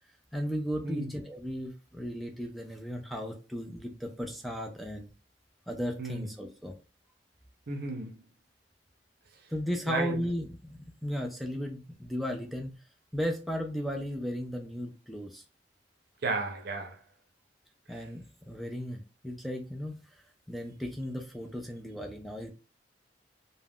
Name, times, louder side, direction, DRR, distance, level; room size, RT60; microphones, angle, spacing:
voice 1, 0.3-5.1 5.7-6.7 9.5-12.8 13.1-15.4 17.9-20.2 20.5-22.5, equal, ahead, 0.3 m, -35 dB
voice 2, 6.0-6.3 7.7-8.1 9.9-10.2 16.2-17.0, right 3 dB, 60° right, 0.6 m, -33 dB
2.4 x 2.1 x 3.4 m
head